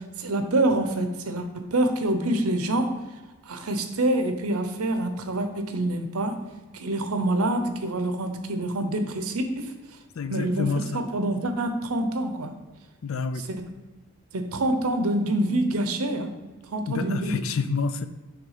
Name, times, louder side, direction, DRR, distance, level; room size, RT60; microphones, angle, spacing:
voice 1, 0.0-3.0 3.5-6.4 6.7-9.7 10.3-12.5 13.5-13.7 14.3-16.4 16.7-17.4, right 1 dB, 85° right, 7 dB, 0.8 m, -26 dB
voice 2, 10.2-11.0 13.0-13.5 16.9-18.1, left 4 dB, 70° left, 10 dB, 0.4 m, -28 dB
6.0 x 3.5 x 5.6 m, 1.2 s
head